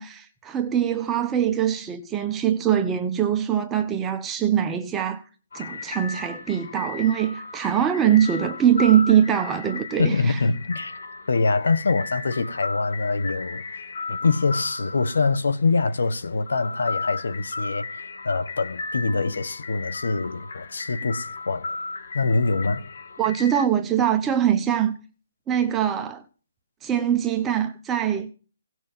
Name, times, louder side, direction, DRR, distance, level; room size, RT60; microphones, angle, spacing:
voice 1, 0.0-5.2 5.5-10.4 23.2-24.9 25.5-26.2 26.8-28.3, right 9 dB, 10° right, 0.8 m, -22 dB
sound 1, 5.5-23.7, left 3 dB, 65° left, 1.9 m, -35 dB
voice 2, 10.0-11.0 11.3-21.7 22.1-22.9, left 3 dB, 80° left, 1.3 m, -24 dB
17.5 x 6.4 x 7.6 m
hypercardioid pair, 160°, 0 cm